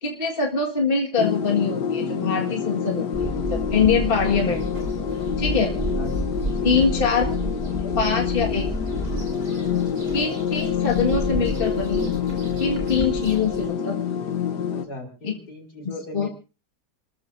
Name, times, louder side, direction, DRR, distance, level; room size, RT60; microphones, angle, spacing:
voice 1, 0.0-4.6 5.4-5.8 6.6-7.3 8.0-8.7 10.1-12.1 12.6-14.0 15.2-15.3 16.1-16.3, left 5 dB, 35° left, 1 dB, 2.0 m, -23 dB
sound 1, 1.2-14.9, left 7 dB, 90° left, 1.8 m, -27 dB
sound 2, 3.1-13.7, equal, 75° right, 5.8 m, -31 dB
voice 2, 4.1-4.5 5.8-6.1 6.4-8.0 14.7-16.3, left 1 dB, 70° left, 2 dB, 4.1 m, -39 dB
28.5 x 13.5 x 2.7 m, 0.33 s
omnidirectional pair, 1.7 m